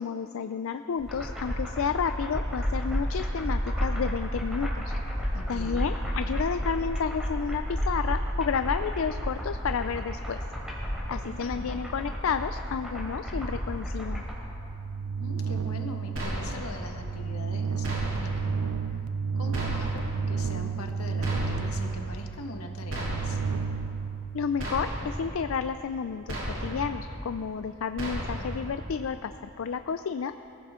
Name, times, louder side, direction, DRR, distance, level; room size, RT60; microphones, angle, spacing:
voice 1, 0.0-5.0 5.5-10.4 11.1-14.2 24.3-30.3, left 6 dB, 65° left, 10 dB, 0.4 m, -31 dB
sound 1, 1.0-14.3, equal, 5° right, 3.2 m, -31 dB
voice 2, 5.3-5.9 11.2-11.8 15.2-18.5 18.9-19.0 19.3-23.4, left 2 dB, 85° left, 3 dB, 1.6 m, -41 dB
sound 2, 14.2-24.9, right 5 dB, 85° right, 0.5 m, -32 dB
sound 3, 16.2-16.8 17.8-18.5 19.5-20.2 21.2-21.9 22.9-23.6 24.6-25.3 26.3-27.0 28.0-28.7, equal, 60° right, 3.1 m, -34 dB
23.5 x 15.0 x 3.7 m, 2.9 s
head